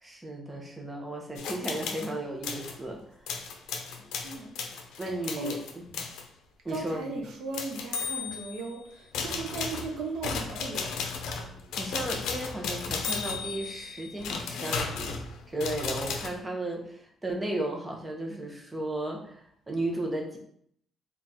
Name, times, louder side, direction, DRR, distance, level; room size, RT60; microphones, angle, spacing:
voice 1, 0.0-3.1 4.0-4.1 5.0-5.6 5.9-6.0 6.6-7.1 11.7-15.2 15.5-20.4, right 1 dB, 10° right, 0 dB, 0.7 m, -34 dB
sound 1, 1.4-2.1 2.4-2.8 3.3-6.2 6.7-6.9 7.5-8.7 9.1-16.3, left 5 dB, 90° left, 0.5 m, -35 dB
voice 2, 6.7-11.1, right 3 dB, 70° right, 1 dB, 0.9 m, -37 dB
3.6 x 2.3 x 4.1 m, 0.66 s
cardioid pair, 145°, 0 cm